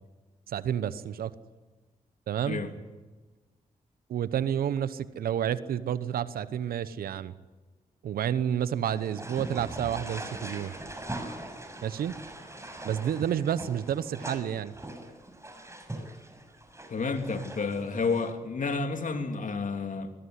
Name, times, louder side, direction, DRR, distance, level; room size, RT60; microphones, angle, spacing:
voice 1, 0.5-1.3 2.3-2.6 4.1-7.3 8.0-10.7 11.8-12.1 12.8-14.7, right 9 dB, 85° right, 16 dB, 1.0 m, -30 dB
sound 1, 8.9-18.3, right 1 dB, 20° right, 6.3 m, -42 dB
voice 2, 16.9-20.1, left 4 dB, 60° left, 6 dB, 3.1 m, -30 dB
22.0 x 20.0 x 9.9 m, 1.2 s
supercardioid pair, 45°, 15 cm